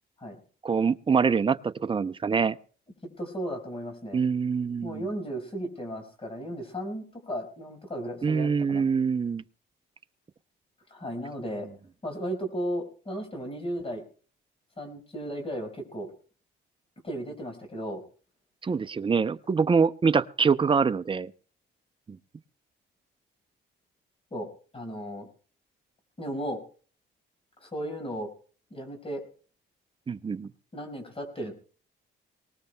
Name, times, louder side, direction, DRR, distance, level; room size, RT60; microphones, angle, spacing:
voice 1, 0.6-2.6 4.1-5.1 8.2-9.4 18.6-21.3 22.1-22.2 30.1-30.5, right 5 dB, 25° right, 13 dB, 0.6 m, -25 dB
voice 2, 3.2-4.2 4.8-8.8 10.9-11.7 12.0-14.0 14.8-16.1 17.0-18.0 24.3-25.3 26.2-26.6 27.6-28.3 28.7-29.2 30.7-31.5, equal, 30° left, 3 dB, 5.3 m, -35 dB
23.0 x 19.0 x 2.3 m, 0.41 s
cardioid pair, 90°, 20 cm